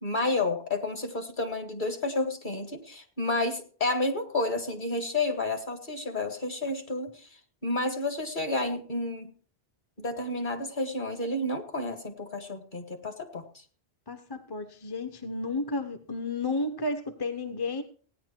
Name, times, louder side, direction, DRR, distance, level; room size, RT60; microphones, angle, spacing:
voice 1, 0.0-7.3 7.6-9.3 10.0-13.4, left 2 dB, 50° left, 2.1 m, -30 dB
voice 2, 14.1-17.8, left 2 dB, 25° left, 0.8 m, -32 dB
16.5 x 10.0 x 4.5 m
omnidirectional pair, 1.1 m